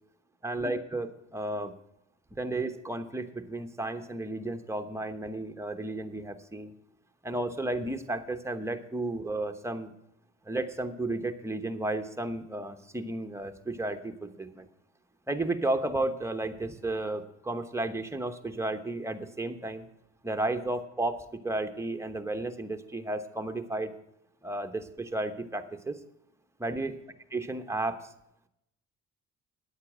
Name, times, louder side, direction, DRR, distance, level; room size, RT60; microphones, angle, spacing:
voice 1, 0.4-1.7 2.4-6.7 7.2-9.9 10.4-14.7 15.3-19.8 20.2-23.9 24.4-26.0 26.6-27.0 27.3-28.1, right 2 dB, 10° right, 6 dB, 1.1 m, -33 dB
9.6 x 8.4 x 6.2 m, 0.82 s
cardioid pair, 90°, 30 cm